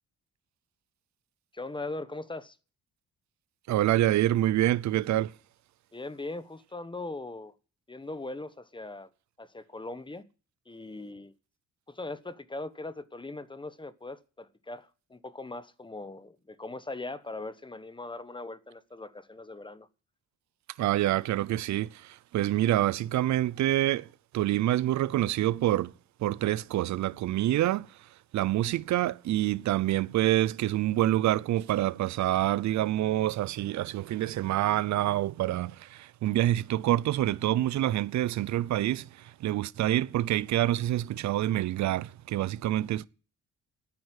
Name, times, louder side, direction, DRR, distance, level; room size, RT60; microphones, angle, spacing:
voice 1, 1.5-2.6 5.9-7.5 7.9-9.1 9.4-10.2 10.7-11.3 11.9-19.9, left 2 dB, 15° left, 1.1 m, -40 dB
voice 2, 3.7-5.3 20.8-24.1 24.3-25.9 26.2-28.0 28.3-43.1, right 14 dB, 65° right, 0.6 m, -27 dB
9.6 x 9.4 x 9.3 m
cardioid pair, 90°, 30 cm